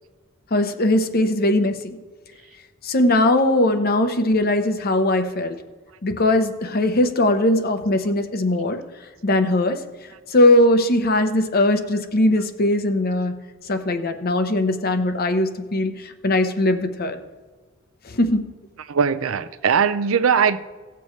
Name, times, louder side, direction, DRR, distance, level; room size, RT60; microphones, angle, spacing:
voice 1, 0.5-2.0 2.8-5.6 6.0-8.8 9.2-9.8 10.3-13.3 13.7-17.2 18.1-18.4, left 1 dB, 50° left, 0.8 m, -20 dB
voice 2, 18.8-20.6, right 6 dB, 85° right, 0.5 m, -20 dB
17.0 x 6.9 x 3.2 m
head